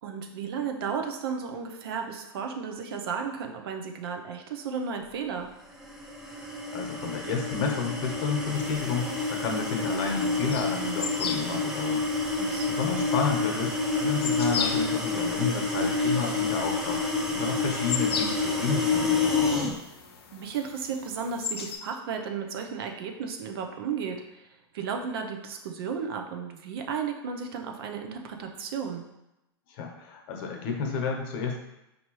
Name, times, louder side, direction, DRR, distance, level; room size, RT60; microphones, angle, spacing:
voice 1, 0.0-5.5 12.4-12.7 20.3-24.5 24.7-29.0, right 6 dB, 70° right, 4 dB, 0.6 m, -34 dB
sound 1, 5.8-19.7, left 3 dB, 5° right, 0.6 m, -28 dB
voice 2, 6.7-12.0 12.7-17.0 17.3-19.8 29.7-31.6, left 5 dB, 60° left, 2 dB, 0.8 m, -31 dB
sound 2, 8.5-21.8, left 6 dB, 80° left, 0.6 m, -38 dB
4.8 x 2.6 x 3.0 m, 0.92 s
hypercardioid pair, 105°, 13 cm